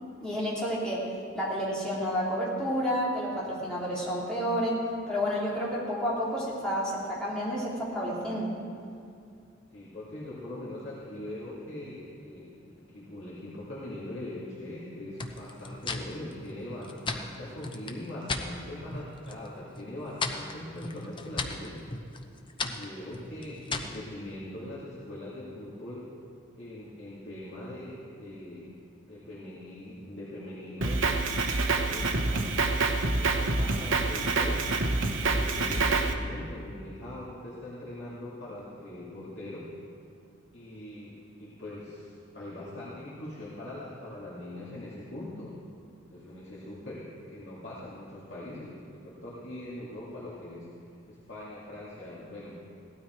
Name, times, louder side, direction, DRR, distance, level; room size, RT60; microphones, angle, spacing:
voice 1, 0.2-1.1 1.3-8.5, equal, 5° left, -9 dB, 3.4 m, -30 dB
voice 2, 9.7-21.8 22.6-26.1 26.6-28.7 29.1-31.3 31.6-32.8 33.2-39.7 40.5-45.6 46.1-52.6, left 1 dB, 55° left, -9 dB, 2.5 m, -41 dB
sound 1, 15.2-18.5 18.9-19.5 19.8-24.0, left 3 dB, 25° left, 0.7 m, -36 dB
Drum kit, 30.8-36.1, right 3 dB, 75° right, 0.9 m, -27 dB
17.0 x 12.5 x 4.6 m, 2.4 s
head